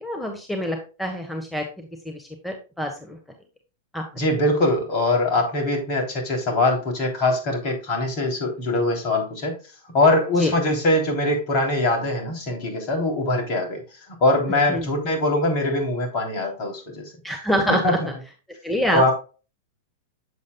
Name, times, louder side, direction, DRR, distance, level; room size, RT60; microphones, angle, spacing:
voice 1, 0.0-3.2 3.9-4.0 10.4-10.5 14.7-14.9 17.2-18.0 18.6-19.1, equal, 5° left, 3 dB, 1.4 m, -26 dB
voice 2, 4.2-9.6 9.9-13.8 14.2-17.0 17.7-17.9 18.9-19.1, left 2 dB, 45° left, 2 dB, 3.4 m, -22 dB
8.3 x 7.2 x 2.3 m, 0.33 s
hypercardioid pair, 110°, 0 cm